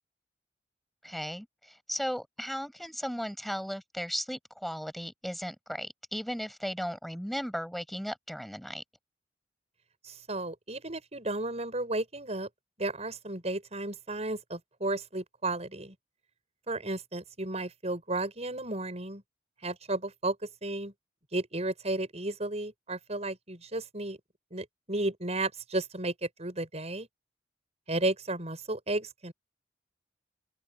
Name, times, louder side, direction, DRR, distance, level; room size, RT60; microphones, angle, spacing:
voice 1, 1.0-8.8, equal, ahead, 7.1 m, -36 dB
voice 2, 10.0-12.5 12.8-16.0 16.7-19.2 19.6-20.9 21.3-24.2 24.5-27.1 27.9-29.3, right 2 dB, 40° right, 7.2 m, -33 dB
head